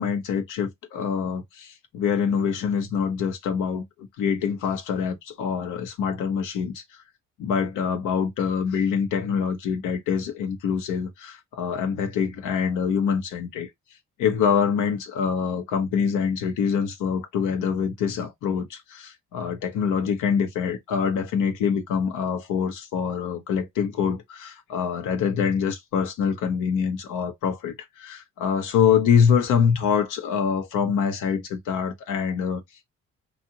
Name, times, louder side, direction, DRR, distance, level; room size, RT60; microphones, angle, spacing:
voice 1, 0.0-7.0 7.4-13.7 14.2-32.6, left 7 dB, 90° left, 0.7 m, -25 dB
2.7 x 2.4 x 2.7 m
cardioid pair, 90°, 30 cm